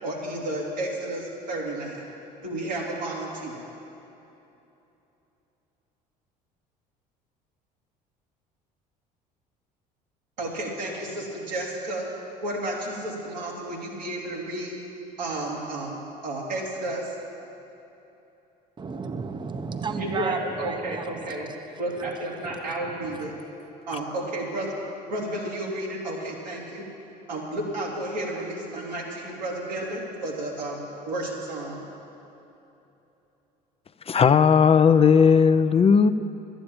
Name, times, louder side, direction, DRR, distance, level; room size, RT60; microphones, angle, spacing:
voice 1, 0.0-2.1 2.4-3.7 10.4-12.1 12.4-14.7 15.2-16.0 16.2-17.1 20.0-21.5 21.8-23.3 23.9-24.7 25.1-26.8 27.3-30.8 31.1-31.8, right 1 dB, 90° right, 2.7 m, -32 dB
voice 2, 18.8-21.5 22.4-22.5 22.9-23.4, right 4 dB, 20° right, 0.7 m, -34 dB
voice 3, 34.1-36.1, left 6 dB, 30° left, 0.5 m, -17 dB
12.0 x 9.1 x 8.7 m
hypercardioid pair, 65°, 21 cm